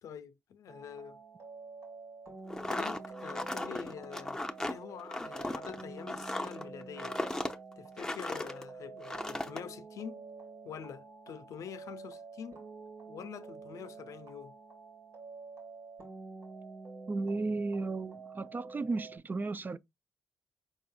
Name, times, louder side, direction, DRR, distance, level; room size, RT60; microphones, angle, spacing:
voice 1, 0.0-1.2 2.6-4.4 4.7-7.2 7.8-10.2 10.6-12.6 13.1-14.5, left 8 dB, 65° left, 0.5 m, -46 dB
sound 1, 0.7-19.2, right 4 dB, 65° right, 1.7 m, -48 dB
sound 2, 2.5-8.6 9.0-9.6, left 1 dB, 10° left, 0.6 m, -37 dB
voice 2, 17.1-19.8, right 3 dB, 30° right, 0.4 m, -34 dB
4.7 x 3.9 x 2.2 m
hypercardioid pair, 45°, 6 cm